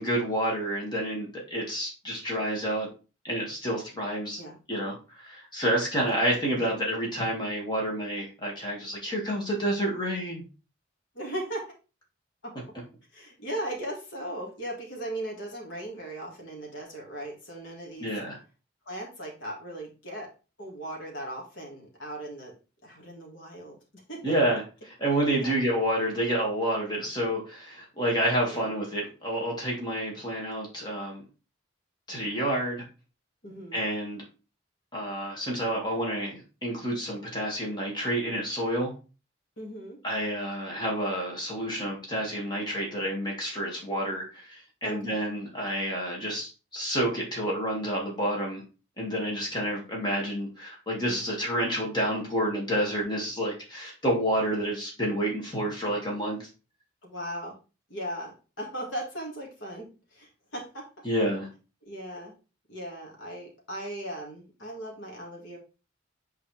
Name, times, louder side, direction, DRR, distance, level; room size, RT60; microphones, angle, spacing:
voice 1, 0.0-2.9 3.2-4.4 4.7-10.4 18.0-18.4 24.2-31.2 32.1-32.8 33.7-34.2 34.9-38.9 40.0-48.6 49.0-56.5 61.0-61.5, right 1 dB, 20° left, -2 dB, 2.1 m, -29 dB
voice 2, 11.1-11.6 12.4-12.5 13.1-18.1 18.9-20.3 20.6-22.5 22.8-23.8 24.1-24.3 25.3-25.5 28.5-28.7 33.4-33.8 39.6-40.0 44.8-45.2 57.0-57.6 57.9-60.9 61.8-62.3 62.7-65.6, right 1 dB, 75° left, -1 dB, 2.1 m, -38 dB
6.5 x 4.6 x 3.4 m, 0.33 s
head